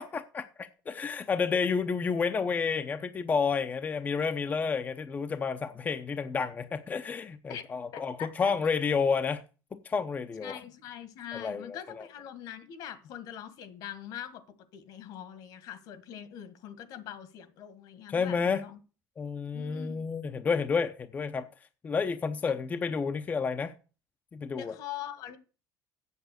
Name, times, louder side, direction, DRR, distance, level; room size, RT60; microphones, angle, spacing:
voice 1, 0.0-9.4 9.7-10.6 11.3-12.1 18.1-18.6 19.2-21.5 21.8-23.7 24.3-24.7, left 5 dB, 25° left, 0.7 m, -30 dB
voice 2, 7.9-8.5 10.4-14.4 14.7-18.8 19.5-20.0 22.5-22.6 24.5-25.4, left 10 dB, 70° left, 1.7 m, -43 dB
8.2 x 7.3 x 7.9 m
cardioid pair, 140°, 7 cm